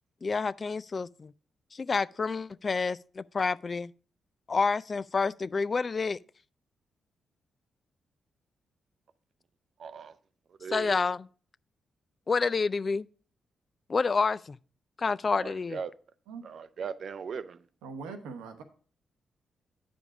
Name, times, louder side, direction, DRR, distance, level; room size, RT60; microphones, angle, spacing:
voice 1, 0.2-1.3 1.7-3.9 4.5-6.2 10.7-11.3 12.3-13.1 13.9-14.6 15.0-15.8, left 4 dB, 45° left, 0.3 m, -28 dB
voice 2, 9.8-10.1 10.6-11.1 15.3-15.9 16.4-17.6, right 6 dB, 60° right, 0.5 m, -38 dB
voice 3, 17.8-18.6, right 4 dB, 85° right, 0.9 m, -41 dB
8.5 x 5.1 x 4.8 m
hypercardioid pair, 45°, 0 cm